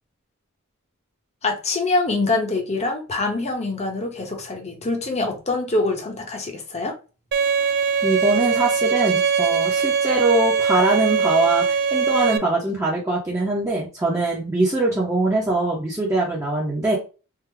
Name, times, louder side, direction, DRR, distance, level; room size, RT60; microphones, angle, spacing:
voice 1, 1.4-7.0, left 2 dB, 30° left, 0.8 m, -24 dB
Bowed string instrument, 7.3-12.4, right 5 dB, 45° right, 0.3 m, -21 dB
voice 2, 8.0-17.0, right 2 dB, 15° right, 0.7 m, -22 dB
3.5 x 2.0 x 3.2 m
head